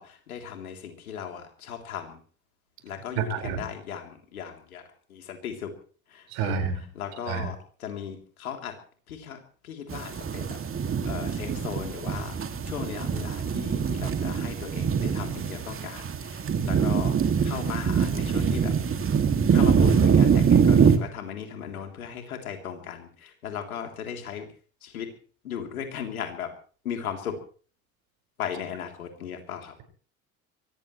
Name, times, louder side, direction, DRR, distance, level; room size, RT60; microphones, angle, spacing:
voice 1, 0.0-2.2 2.8-4.8 5.1-5.7 6.1-8.8 9.1-12.4 12.6-18.7 19.5-24.5 24.8-25.1 25.4-26.5 26.8-27.3 28.4-29.8, left 8 dB, 80° left, 4 dB, 3.5 m, -37 dB
voice 2, 3.2-3.6 6.3-6.7 7.3-7.5, right 7 dB, 60° right, 6 dB, 5.4 m, -28 dB
sound 1, 9.9-21.0, right 6 dB, 30° right, 2.4 m, -24 dB
23.5 x 18.0 x 3.2 m, 0.41 s
hypercardioid pair, 65°, 42 cm